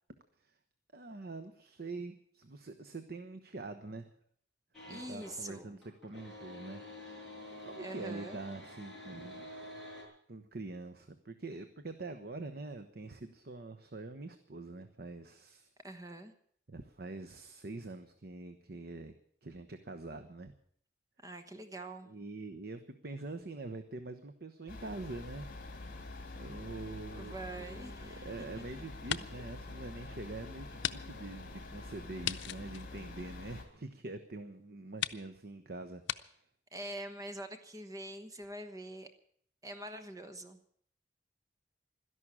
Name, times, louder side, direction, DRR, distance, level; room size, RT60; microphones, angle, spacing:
voice 1, 0.9-4.1 4.9-6.8 7.1-9.6 10.3-15.7 16.7-19.1 19.4-20.5 22.1-26.0 26.3-36.5, right 2 dB, 60° right, 8 dB, 1.0 m, -45 dB
sound 1, 4.7-5.4 5.7-10.0, left 1 dB, ahead, 6.7 m, -48 dB
voice 2, 4.9-5.8 7.8-8.4 15.8-16.3 21.2-22.1 27.1-28.2 36.7-39.1 39.6-40.6, right 1 dB, 20° right, 8 dB, 1.1 m, -44 dB
sound 2, 24.7-33.6, left 2 dB, 55° left, 2.9 m, -46 dB
sound 3, 27.6-28.6 28.9-29.5 30.0-30.1 30.8-31.0 31.3-31.4 32.2-33.8 34.5-34.6 35.0-35.2 36.0-36.2, left 10 dB, 90° left, 0.6 m, -38 dB
13.0 x 11.0 x 8.7 m, 0.62 s
head